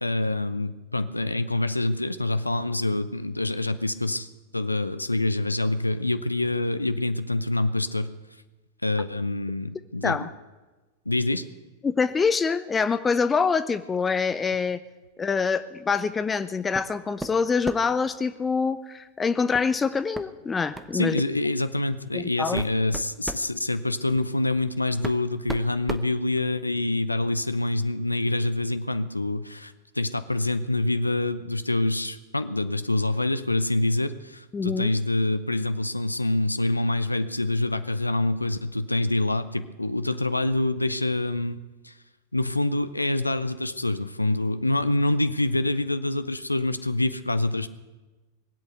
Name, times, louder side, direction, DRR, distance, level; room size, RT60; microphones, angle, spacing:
voice 1, 0.0-4.3 4.5-8.1 8.8-10.3 11.1-11.4 20.9-41.6 41.8-42.0 42.3-47.7, left 2 dB, 85° left, 12 dB, 0.6 m, -26 dB
voice 2, 11.8-14.8 15.2-21.2 22.1-22.6 34.5-34.9, left 5 dB, 15° left, 13 dB, 0.5 m, -25 dB
sound 1, 16.7-16.9 17.2-18.0 19.5-19.7 20.1-20.3 20.7-21.0 21.8-21.9 22.4-23.5 24.5-24.6 25.0-26.8, right 2 dB, 5° right, 0.9 m, -35 dB
20.5 x 8.2 x 8.1 m, 1.2 s
figure-of-eight pair, 90°, 0 cm